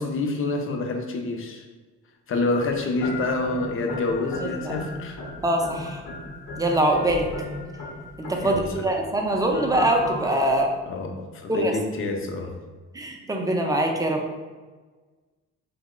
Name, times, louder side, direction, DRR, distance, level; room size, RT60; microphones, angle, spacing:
voice 1, 0.0-1.7 2.3-5.2 8.4-8.9 10.8-12.6, left 3 dB, 45° left, 3 dB, 0.5 m, -27 dB
sound 1, 2.6-10.7, left 2 dB, 85° left, 0.7 m, -36 dB
voice 2, 5.4-6.0 6.6-7.3 8.2-10.7 11.5-11.8 12.9-14.2, right 1 dB, 10° right, 1 dB, 0.4 m, -23 dB
2.9 x 2.1 x 3.6 m, 1.3 s
cardioid pair, 90°, 30 cm